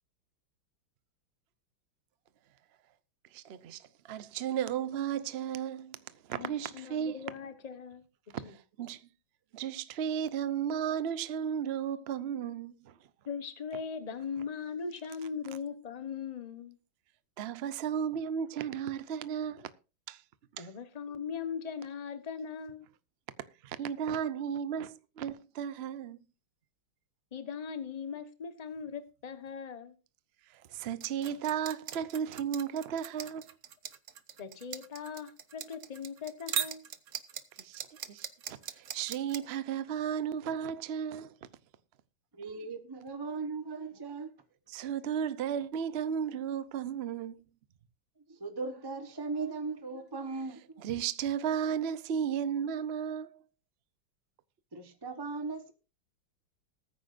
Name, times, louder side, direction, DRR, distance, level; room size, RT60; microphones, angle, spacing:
voice 1, 3.3-6.0 6.2-7.2 8.4-8.5 8.8-9.0 9.5-12.9 17.4-19.7 20.1-20.2 20.6-20.7 23.6-26.2 30.5-33.5 37.6-37.8 38.1-41.4 44.7-47.4 50.8-53.4, right 8 dB, 85° right, 0.5 m, -34 dB
voice 2, 6.3-8.0 8.4-8.5 13.2-16.8 20.6-22.9 27.3-29.9 34.4-36.8, left 6 dB, 25° left, 0.9 m, -40 dB
sound 1, 31.0-39.4, right 8 dB, 55° right, 0.9 m, -39 dB
voice 3, 42.3-44.3 48.3-50.8 54.7-55.7, right 4 dB, 20° right, 0.6 m, -38 dB
20.5 x 9.4 x 2.6 m
omnidirectional pair, 2.3 m